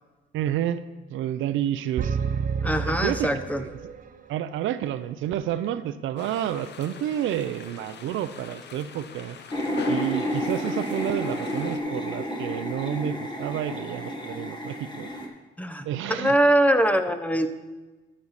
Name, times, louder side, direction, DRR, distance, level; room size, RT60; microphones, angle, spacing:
voice 1, 0.3-0.8 1.1-2.2 2.9-3.8 4.3-9.4 9.9-15.1 15.9-16.4, right 11 dB, 80° right, 13 dB, 0.5 m, -30 dB
sound 1, 2.0-4.1, right 6 dB, 45° right, 0.7 m, -29 dB
voice 2, 2.6-3.6 15.6-15.8 16.2-17.5, right 1 dB, 5° left, 9 dB, 0.7 m, -22 dB
sound 2, 6.2-11.8, left 6 dB, 60° left, 0.8 m, -42 dB
sound 3, 9.5-15.3, left 1 dB, 25° left, 1.5 m, -30 dB
11.5 x 6.4 x 4.1 m, 1.2 s
cardioid pair, 90°, 20 cm